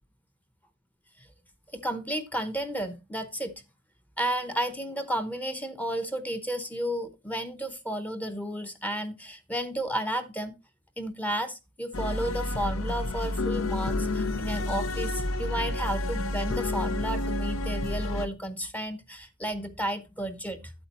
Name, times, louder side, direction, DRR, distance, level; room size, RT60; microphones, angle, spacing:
voice 1, 1.7-3.5 4.2-10.5 11.0-20.7, right 1 dB, 10° left, 0.8 m, -32 dB
sound 1, 11.9-18.3, left 2 dB, 80° left, 0.7 m, -30 dB
8.6 x 8.1 x 2.9 m
head